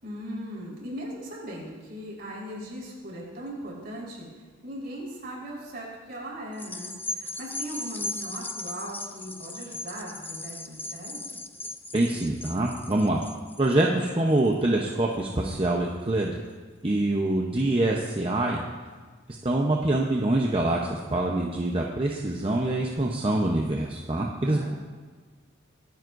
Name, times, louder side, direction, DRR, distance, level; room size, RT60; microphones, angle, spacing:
voice 1, 0.0-4.3 4.6-11.2 24.4-24.7, right 1 dB, 50° right, -4 dB, 4.3 m, -38 dB
sound 1, 6.5-15.2 15.7-15.8, left 2 dB, 10° left, 0.4 m, -38 dB
voice 2, 11.9-13.2 13.6-16.4 16.8-18.6 19.4-24.7, right 1 dB, 25° right, -1 dB, 0.8 m, -25 dB
24.5 x 9.3 x 2.6 m, 1.5 s
head